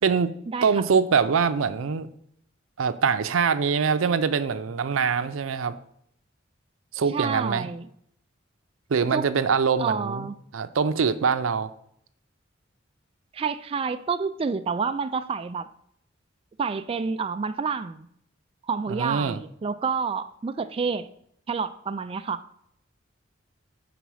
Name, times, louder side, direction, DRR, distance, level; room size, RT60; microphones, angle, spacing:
voice 1, 0.0-2.1 2.8-5.7 6.9-7.7 8.9-11.7 18.9-19.4, right 6 dB, 90° right, 12 dB, 0.5 m, -24 dB
voice 2, 7.1-7.9 9.1-9.2 9.8-10.3 13.3-15.7 16.6-18.1 18.7-21.1 21.5-22.4, right 5 dB, 30° right, 9 dB, 0.3 m, -28 dB
6.9 x 4.0 x 6.2 m, 0.70 s
head